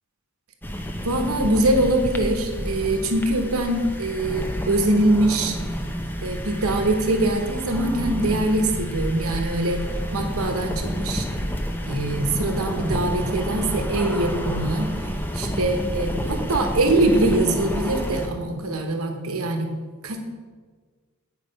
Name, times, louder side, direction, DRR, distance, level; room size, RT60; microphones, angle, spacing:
sound 1, 0.6-18.3, equal, 10° left, 0.7 m, -29 dB
voice 1, 1.0-5.6 6.2-9.8 10.1-11.2 11.9-19.7 20.0-20.2, right 1 dB, 85° right, 5 dB, 1.0 m, -23 dB
9.8 x 4.9 x 5.2 m, 1.5 s
head